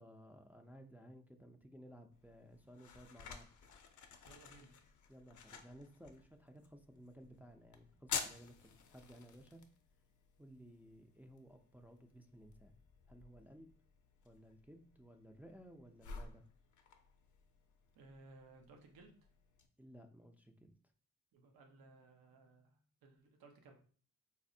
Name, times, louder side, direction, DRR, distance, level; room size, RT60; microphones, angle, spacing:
voice 1, 0.0-3.5 5.1-9.6 10.4-12.8 13.1-13.7 14.2-16.4 19.8-20.8, equal, 5° right, 4 dB, 0.3 m, -58 dB
sound 1, 2.1-19.7, left 6 dB, 60° left, 0.5 m, -51 dB
voice 2, 4.2-4.9 18.0-19.1 21.3-23.8, right 3 dB, 80° right, 3 dB, 0.7 m, -61 dB
4.2 x 2.0 x 2.6 m, 0.43 s
cardioid pair, 60°, 35 cm